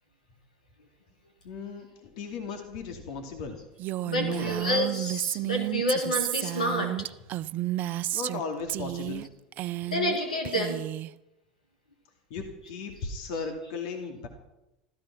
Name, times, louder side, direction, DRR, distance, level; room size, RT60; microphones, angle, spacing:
voice 1, 1.4-3.6 4.2-4.7 8.1-9.3 12.3-14.3, left 4 dB, 65° left, 3 dB, 2.7 m, -36 dB
Female speech woman speaking, 3.8-8.4 8.7-9.3 9.5-10.2 10.4-11.1, right 15 dB, 50° right, 0.6 m, -31 dB
voice 2, 4.0-7.1 9.8-10.8 13.3-13.5, equal, 90° left, 3 dB, 3.1 m, -29 dB
15.0 x 13.5 x 6.1 m, 0.91 s
hypercardioid pair, 80°, 4 cm